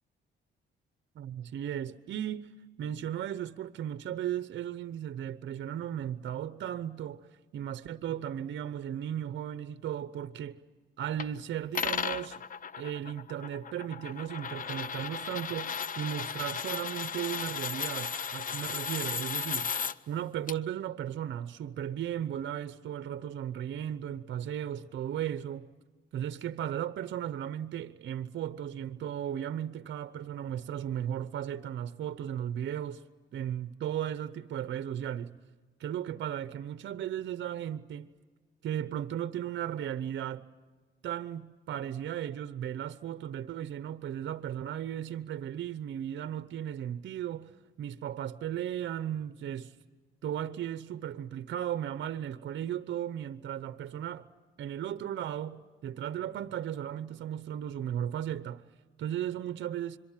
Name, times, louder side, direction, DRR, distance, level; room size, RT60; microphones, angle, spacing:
voice 1, 1.1-2.5 2.8-10.6 11.0-12.4 12.8-19.7 20.1-25.7 26.1-33.0 33.3-35.4 35.8-38.1 38.6-40.4 41.0-47.5 47.8-49.7 50.2-54.3 54.6-58.6 59.0-60.0, right 10 dB, 65° right, 0.9 m, -36 dB
sound 1, 11.2-11.3 11.7-19.9 20.5-20.6, left 6 dB, 45° left, 0.7 m, -35 dB
26.0 x 23.5 x 7.4 m
cardioid pair, 90°, 20 cm